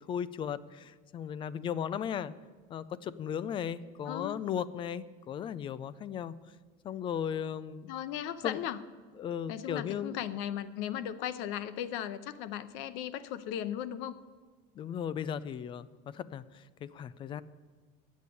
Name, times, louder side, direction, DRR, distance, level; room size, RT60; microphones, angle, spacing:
voice 1, 0.1-2.3 2.7-6.3 6.8-7.9 8.4-8.6 9.2-10.2 14.8-17.4, left 8 dB, 25° left, 16 dB, 0.4 m, -36 dB
voice 2, 4.0-4.4 7.9-8.8 9.5-14.2, left 10 dB, 80° left, 13 dB, 0.7 m, -37 dB
11.0 x 8.2 x 8.5 m, 1.4 s
cardioid pair, 170°, 19 cm